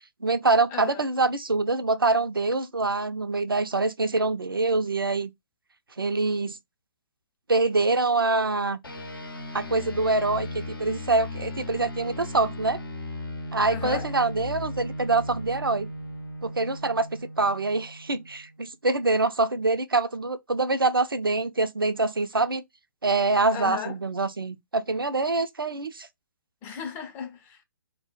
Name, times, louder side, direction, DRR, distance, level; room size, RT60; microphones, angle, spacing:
voice 1, 0.2-5.3 6.0-6.6 7.5-8.8 9.5-12.8 13.5-15.9 16.4-22.6 23.0-26.1, right 3 dB, 85° right, 0.4 m, -25 dB
voice 2, 0.7-1.0 13.7-14.1 23.5-23.9 26.6-27.6, left 7 dB, 15° left, 0.4 m, -35 dB
sound 1, 8.8-18.6, left 1 dB, 80° left, 0.7 m, -37 dB
2.2 x 2.0 x 3.7 m
figure-of-eight pair, 125°, 12 cm